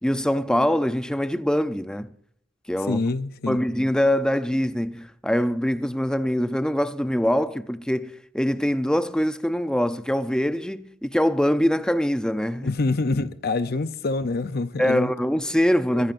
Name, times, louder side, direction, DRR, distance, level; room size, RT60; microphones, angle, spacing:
voice 1, 0.0-2.1 2.7-3.0 3.5-12.7 14.8-16.1, equal, 5° left, 0.5 m, -23 dB
voice 2, 2.8-3.6 12.6-15.1 15.9-16.1, left 3 dB, 50° left, 0.6 m, -26 dB
23.0 x 15.5 x 2.6 m
head